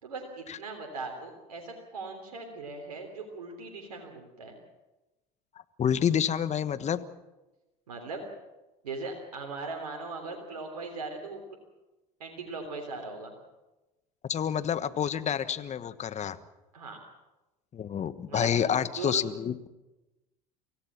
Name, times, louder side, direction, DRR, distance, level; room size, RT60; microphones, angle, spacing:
voice 1, 0.0-4.6 7.9-8.2 8.8-11.4 12.2-13.3 16.7-17.0 18.3-19.2, right 3 dB, 90° right, 3 dB, 3.4 m, -39 dB
voice 2, 5.8-7.0 14.3-16.4 17.7-19.7, left 8 dB, 35° left, 13 dB, 1.3 m, -28 dB
25.0 x 16.5 x 7.4 m, 1.1 s
hypercardioid pair, 75°, 20 cm